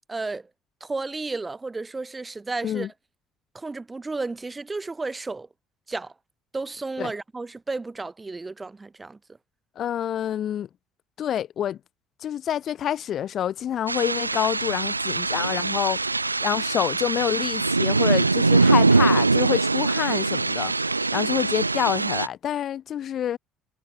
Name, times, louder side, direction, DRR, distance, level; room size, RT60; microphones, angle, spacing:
voice 1, 0.1-0.5 0.8-2.9 3.5-5.5 5.9-6.1 6.5-9.2, right 3 dB, 20° right, 0.5 m, -32 dB
voice 2, 9.8-10.7 11.2-11.8 12.2-16.0 16.4-20.7 21.1-23.4, left 10 dB, 50° left, 0.3 m, -27 dB
sound 1, 13.9-22.3, right 3 dB, 90° right, 0.3 m, -22 dB
figure-of-eight pair, 55°, 0 cm